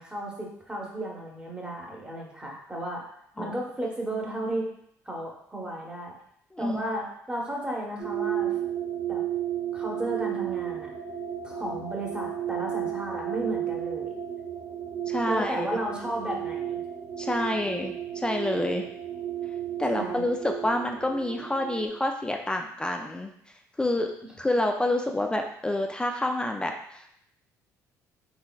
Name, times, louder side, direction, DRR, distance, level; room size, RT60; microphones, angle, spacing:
voice 1, 0.0-3.0 3.4-4.7 5.0-6.2 6.6-8.5 9.1-9.2 9.7-10.9 11.4-14.1 15.3-16.8 17.5-17.7 19.9-20.3, right 1 dB, 15° right, -2 dB, 1.0 m, -34 dB
sound 1, 8.0-21.9, right 10 dB, 70° right, 1.0 m, -33 dB
voice 2, 15.1-15.7 17.2-18.8 19.8-23.3 23.8-24.1 24.4-27.1, left 1 dB, 15° left, 3 dB, 0.3 m, -28 dB
3.9 x 3.2 x 2.3 m, 0.70 s
supercardioid pair, 80°, 7 cm